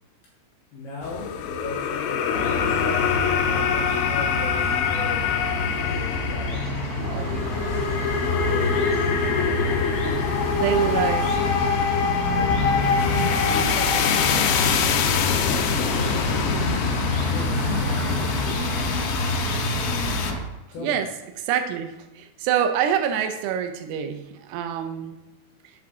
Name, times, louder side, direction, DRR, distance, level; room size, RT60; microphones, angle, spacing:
voice 1, 0.7-5.2 5.7-6.6 7.0-10.0 10.5-10.9 12.2-14.8 15.2-16.7 17.3-18.8 19.9-20.1 20.7-21.0, left 4 dB, 65° left, -4 dB, 2.7 m, -38 dB
sound 1, 1.0-20.3, left 7 dB, 85° left, 2.7 m, -25 dB
sound 2, 2.3-20.4, left 2 dB, 30° left, 2.0 m, -27 dB
voice 2, 7.0-7.5 10.5-11.4 17.5-17.8 20.8-21.1 21.4-25.2, right 9 dB, 90° right, 7 dB, 3.4 m, -26 dB
7.8 x 5.9 x 3.7 m, 0.99 s
omnidirectional pair, 5.9 m